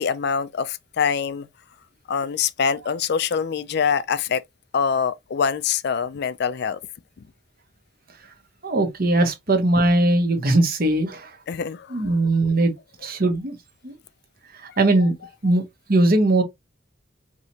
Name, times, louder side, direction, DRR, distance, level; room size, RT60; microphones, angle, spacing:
voice 1, 0.0-1.5 2.1-4.4 4.7-6.8 11.5-12.2 14.7-14.8, left 6 dB, 60° left, 0.4 m, -24 dB
voice 2, 8.6-11.3 11.9-12.7 13.0-13.6 13.8-14.0 14.5-15.1 15.4-16.4, right 2 dB, 50° right, 1.0 m, -20 dB
4.7 x 3.0 x 2.8 m
head